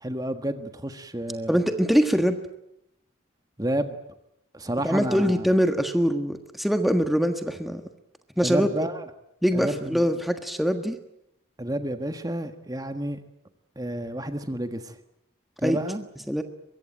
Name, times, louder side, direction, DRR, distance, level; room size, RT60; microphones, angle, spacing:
voice 1, 0.0-1.6 3.6-4.0 4.5-5.5 8.4-9.0 9.5-10.0 11.6-13.2 13.7-15.0 15.6-16.1, right 1 dB, 20° right, 8 dB, 1.4 m, -30 dB
voice 2, 1.5-2.4 4.8-7.8 8.4-8.7 9.4-11.0 15.6-15.8 16.3-16.4, equal, ahead, 7 dB, 1.4 m, -23 dB
23.5 x 22.5 x 9.1 m, 0.80 s
head